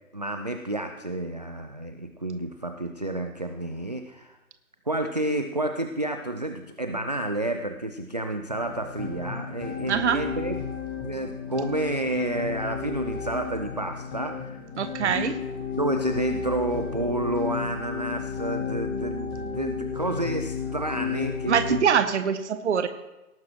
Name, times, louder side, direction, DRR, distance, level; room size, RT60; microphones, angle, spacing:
voice 1, 0.1-4.4 4.9-10.5 11.0-14.6 15.0-15.4 15.8-21.8, right 1 dB, 30° right, 7 dB, 0.4 m, -30 dB
sound 1, 8.5-21.8, left 7 dB, 10° left, 0.9 m, -33 dB
voice 2, 9.9-10.3 14.8-15.4 21.5-22.9, right 7 dB, 50° right, 11 dB, 0.8 m, -23 dB
18.5 x 9.3 x 3.0 m, 1.0 s
figure-of-eight pair, 140°, 44 cm